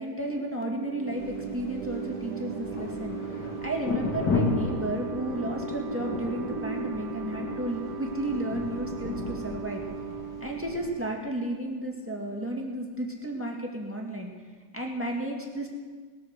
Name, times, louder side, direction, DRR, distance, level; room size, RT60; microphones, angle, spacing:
voice 1, 0.0-3.2 3.6-9.8 10.4-14.3 14.7-15.7, right 1 dB, 10° right, -1 dB, 1.9 m, -33 dB
sound 1, 0.6-12.0, right 6 dB, 70° right, 1.5 m, -39 dB
Wind, 1.1-9.8, right 3 dB, 30° right, 0.6 m, -41 dB
sound 2, 1.2-10.9, left 3 dB, 80° left, 2.8 m, -35 dB
20.0 x 8.3 x 6.6 m, 1.5 s
omnidirectional pair, 1.8 m